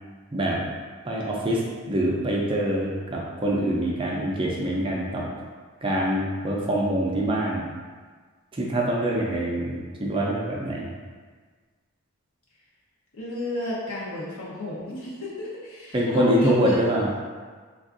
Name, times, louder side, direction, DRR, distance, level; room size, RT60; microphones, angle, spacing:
voice 1, 0.3-0.7 1.0-5.2 5.8-7.7 8.5-11.0 15.9-17.1, right 1 dB, 25° right, -3 dB, 0.3 m, -25 dB
voice 2, 13.1-16.8, left 1 dB, 75° left, -6 dB, 0.8 m, -33 dB
3.4 x 2.3 x 2.5 m, 1.5 s
head